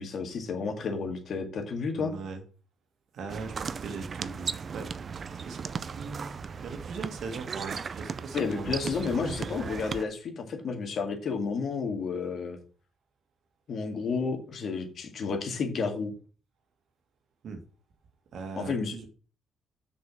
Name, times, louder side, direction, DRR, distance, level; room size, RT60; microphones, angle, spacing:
voice 1, 0.0-2.1 8.3-12.6 13.7-16.1 18.6-18.9, left 5 dB, 60° left, 4 dB, 2.0 m, -31 dB
voice 2, 1.9-2.4 3.1-4.9 5.2-5.6 6.0-6.3 6.6-8.7 9.0-9.5 17.4-17.6 18.3-19.1, right 4 dB, 65° right, 6 dB, 1.8 m, -40 dB
sound 1, 3.3-10.1, right 6 dB, 45° right, 0.5 m, -37 dB
6.6 x 5.2 x 6.0 m, 0.38 s
cardioid pair, 90°, 0 cm